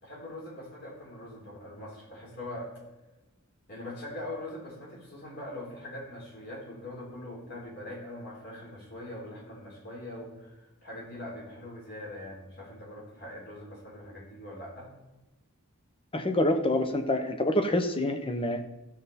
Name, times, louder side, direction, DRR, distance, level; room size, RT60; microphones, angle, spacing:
voice 1, 0.0-2.7 3.7-14.9, left 1 dB, 50° left, -3 dB, 3.8 m, -42 dB
voice 2, 16.1-18.7, left 1 dB, 25° left, 7 dB, 0.8 m, -27 dB
14.5 x 6.8 x 4.2 m, 1.0 s
head